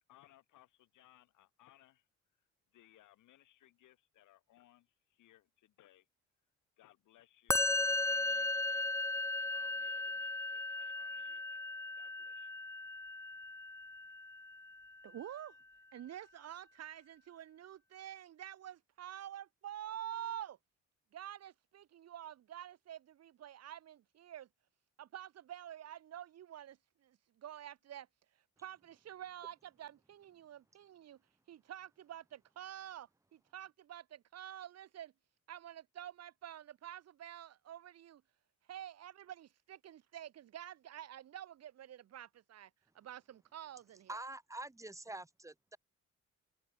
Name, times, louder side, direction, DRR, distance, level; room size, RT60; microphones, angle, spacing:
voice 1, 0.0-2.1 2.7-6.1 6.8-8.9 9.2-11.6 12.0-12.5, left 14 dB, 85° left, 6.4 m, -65 dB
Musical instrument, 7.5-14.8, left 2 dB, 10° left, 0.5 m, -36 dB
voice 2, 15.0-15.5 15.9-20.6 21.1-24.5 25.0-28.1 28.6-31.2 31.5-35.1 35.5-38.2 38.7-42.7 42.9-44.2, right 11 dB, 55° right, 1.0 m, -48 dB
voice 3, 44.1-45.8, right 2 dB, 10° right, 1.1 m, -46 dB
cardioid pair, 90°, 30 cm